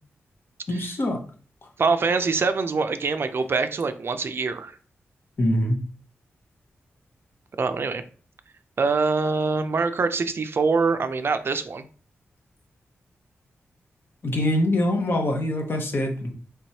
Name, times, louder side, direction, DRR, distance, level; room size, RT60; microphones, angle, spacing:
voice 1, 0.7-1.2 5.4-5.8 14.2-16.3, left 1 dB, 50° left, 3 dB, 0.9 m, -24 dB
voice 2, 1.8-4.8 7.6-8.0 8.8-11.9, right 4 dB, 55° right, 9 dB, 0.4 m, -24 dB
3.3 x 3.1 x 2.8 m, 0.41 s
cardioid pair, 65°, 5 cm